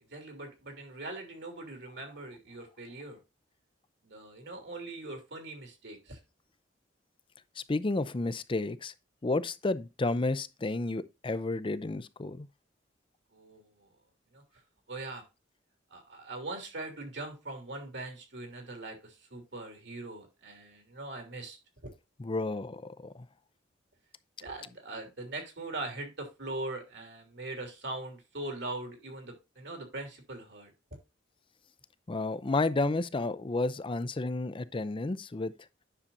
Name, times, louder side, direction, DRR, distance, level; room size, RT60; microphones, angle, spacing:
voice 1, 0.1-3.2 4.0-6.2 13.3-13.9 14.3-14.4 14.9-15.2 15.9-21.9 24.4-30.7, right 2 dB, 65° right, 3.1 m, -41 dB
voice 2, 7.6-8.9 9.2-12.5 22.2-23.1 32.1-35.5, left 2 dB, 30° left, 0.5 m, -31 dB
10.0 x 6.6 x 2.6 m
head